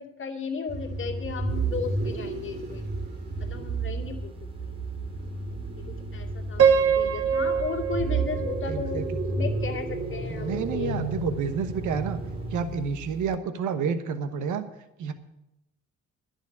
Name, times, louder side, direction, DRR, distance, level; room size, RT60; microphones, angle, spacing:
voice 1, 0.0-2.9 3.4-4.3 4.6-4.7 5.8-9.1 9.3-11.0, left 5 dB, 40° left, 2 dB, 2.2 m, -35 dB
sound 1, 0.7-12.9, right 3 dB, 35° right, 2.5 m, -32 dB
sound 2, 1.5-13.3, right 2 dB, 20° right, 0.8 m, -44 dB
Piano, 6.6-9.6, right 7 dB, 50° right, 0.9 m, -24 dB
voice 2, 8.7-9.2 10.3-12.2 12.5-14.6 15.0-15.1, right 6 dB, 80° right, 9 dB, 1.2 m, -29 dB
11.0 x 7.2 x 9.6 m, 0.90 s
cardioid pair, 90°, 30 cm